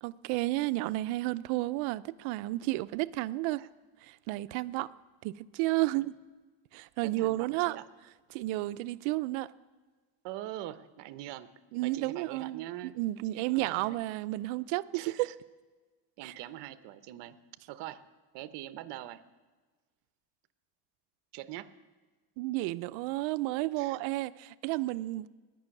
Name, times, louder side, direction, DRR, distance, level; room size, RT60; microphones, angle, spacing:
voice 1, 0.0-3.6 4.0-4.9 5.2-6.1 6.7-7.8 8.3-9.5 11.7-12.7 12.9-15.3 16.2-16.3 22.4-25.3, right 18 dB, 85° right, 15 dB, 0.7 m, -32 dB
voice 2, 7.0-7.8 10.2-11.5 11.8-13.0 13.3-14.0 14.9-15.3 16.2-17.4 17.7-18.0 18.3-19.2 21.3-21.7 23.8-24.0, right 14 dB, 65° right, 12 dB, 1.0 m, -43 dB
19.0 x 6.3 x 9.7 m, 1.3 s
cardioid pair, 155°, 45 cm